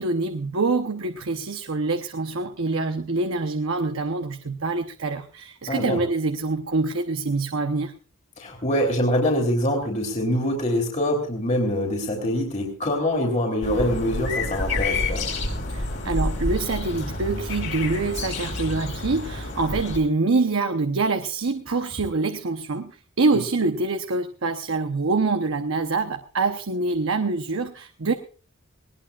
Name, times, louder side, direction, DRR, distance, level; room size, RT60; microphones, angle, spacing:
voice 1, 0.0-7.9 15.7-28.1, right 3 dB, 75° right, 7 dB, 0.9 m, -25 dB
voice 2, 5.7-6.0 8.4-15.3, left 1 dB, 35° left, 1 dB, 3.1 m, -24 dB
sound 1, 13.6-20.0, left 2 dB, 60° left, 4.9 m, -29 dB
20.0 x 19.0 x 2.5 m, 0.39 s
head